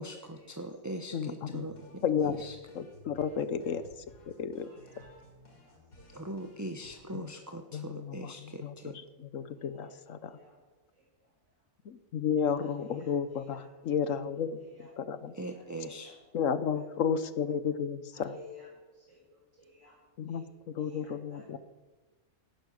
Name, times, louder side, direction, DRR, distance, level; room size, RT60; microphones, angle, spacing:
voice 1, 0.0-2.6 6.1-9.0 15.3-16.1, right 1 dB, 15° right, 5 dB, 0.9 m, -41 dB
voice 2, 1.1-1.7 2.0-2.4 2.8-3.8 4.4-4.7 7.1-7.2 7.7-8.2 8.6-8.7 9.3-10.4 11.9-14.6 15.0-15.3 16.3-18.4 20.2-20.4 20.7-21.6, left 7 dB, 65° left, 13 dB, 1.2 m, -32 dB
sound 1, 1.6-6.9, left 2 dB, 85° left, 3.9 m, -56 dB
voice 3, 4.6-6.1 9.6-10.6 10.9-11.3 12.5-13.9 14.6-14.9 15.5-15.6 16.0-16.1 18.1-20.0 20.3-20.4 20.8-21.6, left 3 dB, 65° right, -6 dB, 5.2 m, -56 dB
18.0 x 11.0 x 6.4 m, 1.2 s
omnidirectional pair, 1.5 m